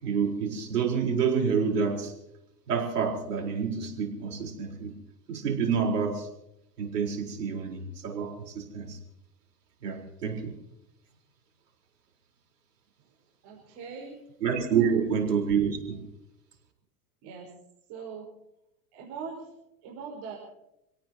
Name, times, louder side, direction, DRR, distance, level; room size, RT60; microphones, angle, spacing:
voice 1, 0.0-2.1 2.7-5.0 5.3-6.3 6.8-9.0 9.8-10.5 14.4-16.0, right 6 dB, 85° right, 1 dB, 4.4 m, -28 dB
voice 2, 13.4-14.2 14.7-15.0 17.2-17.5 17.9-18.3 18.9-20.4, right 5 dB, 55° right, -1 dB, 5.1 m, -41 dB
27.5 x 18.0 x 2.9 m, 0.86 s
hypercardioid pair, 90°, 46 cm